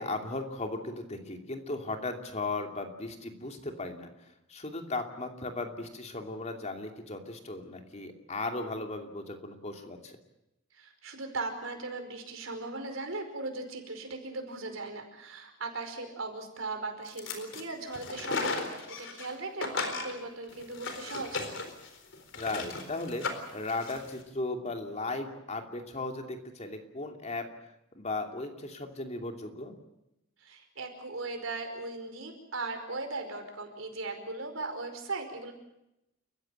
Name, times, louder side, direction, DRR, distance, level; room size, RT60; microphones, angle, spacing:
voice 1, 0.0-10.2 22.3-27.5 27.9-29.7, left 2 dB, 35° left, 4 dB, 2.8 m, -36 dB
voice 2, 10.7-21.5 30.4-35.5, right 3 dB, 70° right, 5 dB, 5.2 m, -38 dB
sound 1, 17.1-17.6 17.9-19.3 19.6-24.1, left 4 dB, 65° left, 4.1 m, -36 dB
29.5 x 15.5 x 8.9 m, 0.88 s
head